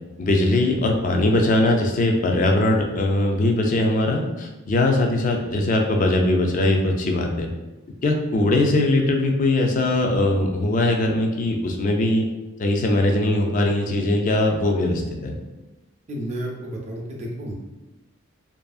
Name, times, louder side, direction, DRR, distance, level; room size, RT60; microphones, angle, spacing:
voice 1, 0.2-7.5 8.0-12.3 12.6-15.4, left 2 dB, 40° left, 2 dB, 0.3 m, -21 dB
voice 2, 16.1-17.5, right 1 dB, 30° right, -1 dB, 0.4 m, -31 dB
2.7 x 2.5 x 2.3 m, 1.1 s
head